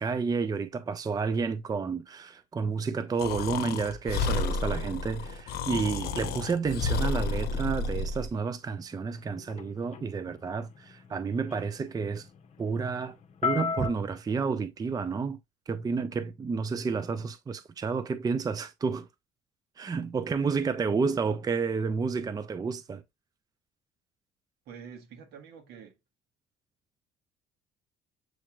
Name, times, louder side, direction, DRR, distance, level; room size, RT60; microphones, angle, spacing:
voice 1, 0.0-12.3 12.6-13.2 13.4-15.4 15.7-19.1 19.8-23.0, right 5 dB, 20° right, 0.5 m, -30 dB
Breathing, 3.2-8.3, left 3 dB, 70° left, 0.8 m, -31 dB
sound 1, 8.9-13.9, left 5 dB, 40° left, 0.9 m, -36 dB
voice 2, 24.7-26.0, right 7 dB, 75° right, 1.5 m, -47 dB
7.7 x 2.9 x 2.3 m
cardioid pair, 110°, 17 cm